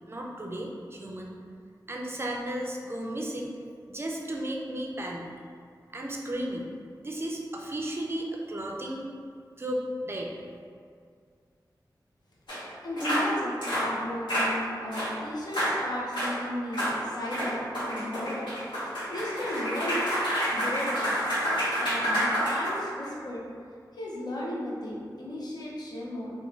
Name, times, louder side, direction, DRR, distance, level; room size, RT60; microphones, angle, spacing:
voice 1, 0.1-1.3 1.9-3.5 3.9-5.3 5.9-6.7 7.0-9.1 9.6-10.4, right 1 dB, 35° right, -1 dB, 0.4 m, -34 dB
sound 1, 12.5-12.6 13.0-13.3 13.6-13.9 14.3-14.5 14.9-15.1 15.5-15.7 16.1-16.3 16.7-16.9 17.3-23.1, equal, 90° left, 1.1 m, -28 dB
voice 2, 12.8-18.5 18.8-20.1 20.5-21.1 21.7-23.4 23.9-26.3, left 1 dB, 65° left, -5 dB, 0.6 m, -35 dB
2.5 x 2.2 x 3.0 m, 2.2 s
wide cardioid pair, 75°, 8 cm